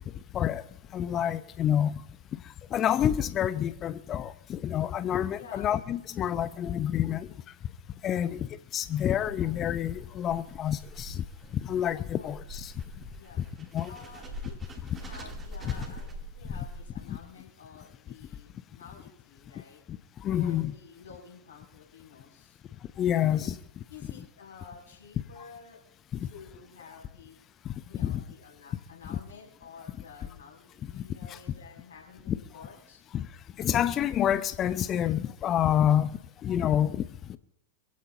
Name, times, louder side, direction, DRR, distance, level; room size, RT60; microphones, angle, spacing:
voice 1, 0.9-2.0 2.7-7.3 8.0-11.2 11.6-12.7 13.7-13.9 15.6-15.7 17.1-17.2 20.2-20.7 23.0-23.5 26.2-26.3 28.0-28.2 29.1-29.2 30.9-31.0 31.3-31.4 32.3-32.4 33.1-33.3 33.6-37.4, left 10 dB, 30° left, 0.8 m, -28 dB
voice 2, 5.4-5.8 8.2-8.6 12.1-12.4 13.1-13.4 13.9-19.8 20.3-22.6 23.3-23.4 23.9-25.8 26.2-27.4 27.9-33.0, left 5 dB, 70° left, 6.4 m, -50 dB
sound 1, 8.9-17.2, equal, 20° right, 2.8 m, -44 dB
27.0 x 16.0 x 2.8 m
figure-of-eight pair, 90°, 0 cm